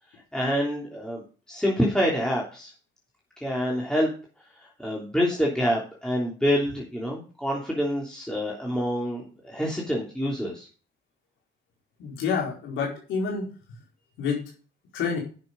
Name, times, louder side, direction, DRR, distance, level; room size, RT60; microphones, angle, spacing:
voice 1, 0.3-2.7 3.4-4.1 4.6-10.7, equal, 5° left, -3 dB, 3.2 m, -27 dB
voice 2, 12.0-13.5 14.2-14.4 14.9-15.2, left 5 dB, 90° left, -2 dB, 4.4 m, -28 dB
10.5 x 7.0 x 5.3 m, 0.37 s
cardioid pair, 90°, 20 cm